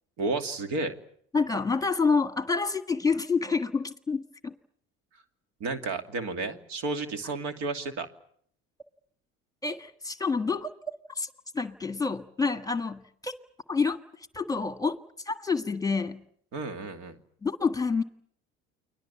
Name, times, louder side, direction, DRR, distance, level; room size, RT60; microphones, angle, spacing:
voice 1, 0.2-0.9 5.6-8.1 16.5-17.2, right 3 dB, 70° right, 2.7 m, -32 dB
voice 2, 1.3-4.5 9.6-10.7 11.2-13.3 13.7-14.0 14.3-15.0 15.2-16.2 17.4-18.0, left 4 dB, 10° left, 1.6 m, -28 dB
29.5 x 21.5 x 7.1 m
supercardioid pair, 80°, 30 cm